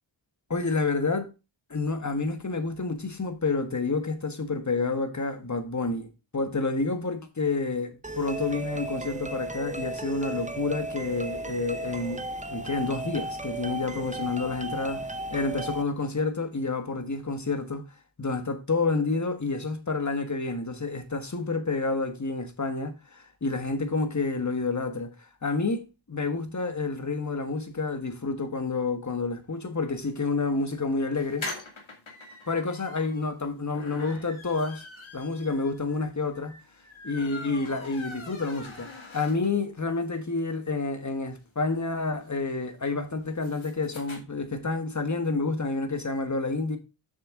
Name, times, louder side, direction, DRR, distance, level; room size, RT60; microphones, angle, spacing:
voice 1, 0.5-1.3 1.7-12.2 12.5-17.8 18.2-31.5 32.5-34.8 35.1-36.5 37.0-38.9 39.1-46.8, left 3 dB, 35° left, 1.6 m, -29 dB
sound 1, 8.0-15.8, right 2 dB, 15° right, 0.8 m, -35 dB
sound 2, 31.2-39.7 40.1-40.2 40.5-40.6 40.8-44.2, left 2 dB, 75° left, 2.4 m, -43 dB
7.0 x 6.7 x 3.8 m
wide cardioid pair, 60°, 47 cm